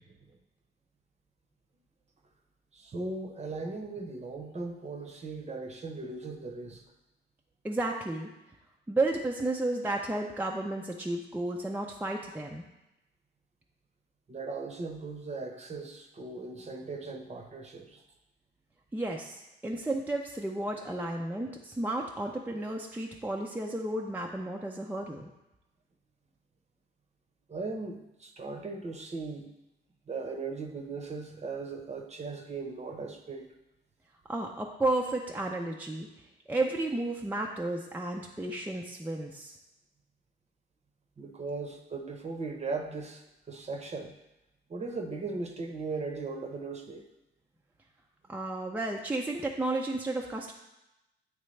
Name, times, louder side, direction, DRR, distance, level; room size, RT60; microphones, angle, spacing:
voice 1, 2.7-6.8 14.3-18.0 27.5-29.5 30.1-33.5 41.2-44.1 44.7-47.0, right 3 dB, 35° right, 3 dB, 0.8 m, -38 dB
voice 2, 7.6-8.3 8.9-12.6 18.9-25.3 34.3-36.1 36.5-39.5 48.3-50.5, right 2 dB, 10° right, 0 dB, 0.5 m, -32 dB
9.1 x 3.3 x 3.2 m, 0.95 s
cardioid pair, 90°, 20 cm